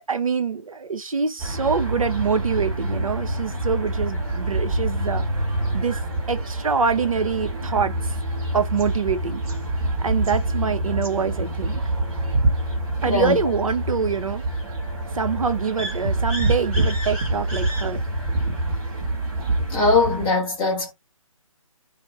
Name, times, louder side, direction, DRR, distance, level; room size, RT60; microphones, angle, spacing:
voice 1, 0.1-5.4 5.7-6.0 6.3-8.1 8.5-9.4 10.0-11.8 13.0-14.4 15.1-18.0, right 5 dB, 75° right, 0.7 m, -25 dB
sound 1, 1.4-20.3, right 1 dB, 20° right, 0.9 m, -26 dB
voice 2, 13.0-13.4 19.7-20.9, left 3 dB, 10° left, 0.7 m, -20 dB
2.4 x 2.0 x 3.2 m
figure-of-eight pair, 155°, 18 cm